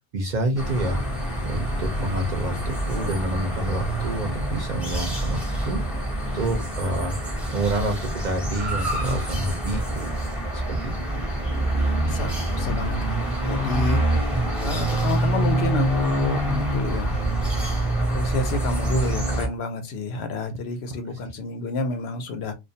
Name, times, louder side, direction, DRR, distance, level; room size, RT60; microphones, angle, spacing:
voice 1, 0.1-1.0 1.4-6.1 6.3-10.1 10.5-11.2 21.1-21.2, right 1 dB, 55° right, 0.6 m, -28 dB
sound 1, 0.6-19.5, right 1 dB, ahead, 0.6 m, -26 dB
voice 2, 12.0-14.0 14.6-17.2 18.1-22.5, left 2 dB, 85° left, 0.9 m, -29 dB
2.3 x 2.2 x 2.6 m
omnidirectional pair, 1.0 m